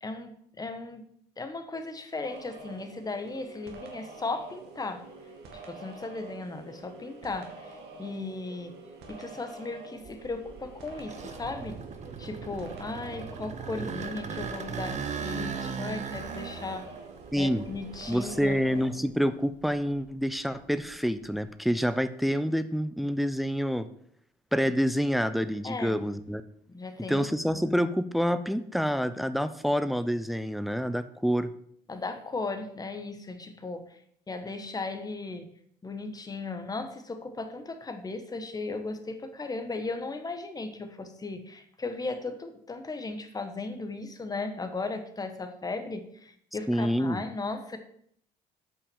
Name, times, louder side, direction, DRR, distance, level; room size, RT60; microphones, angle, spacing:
voice 1, 0.0-1.0 1.4-5.0 5.6-7.7 8.0-8.8 9.1-11.8 12.2-16.9 17.4-18.6 25.6-26.0 26.7-27.3 31.9-34.0 34.3-35.5 35.8-47.8, left 3 dB, 20° left, 7 dB, 1.3 m, -36 dB
sound 1, 2.2-19.0, right 3 dB, 80° right, 2.3 m, -47 dB
sound 2, 10.0-19.1 19.5-21.4, right 6 dB, 45° right, 1.1 m, -39 dB
voice 2, 17.3-17.6 18.1-23.9 24.5-26.4 27.1-31.5 46.7-47.2, equal, ahead, 12 dB, 0.6 m, -27 dB
8.7 x 5.6 x 7.2 m, 0.67 s
cardioid pair, 110°, 17 cm